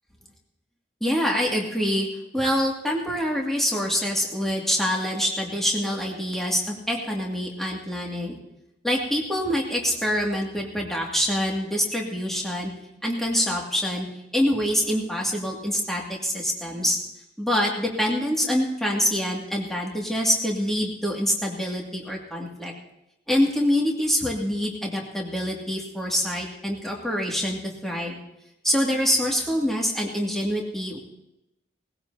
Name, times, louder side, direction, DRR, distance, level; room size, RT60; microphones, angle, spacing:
voice 1, 1.0-2.1 2.3-8.4 8.8-12.7 13.0-14.1 14.3-17.0 17.4-22.7 23.3-28.2 28.6-31.0, equal, ahead, -2 dB, 2.3 m, -25 dB
20.5 x 16.0 x 2.8 m, 0.88 s
head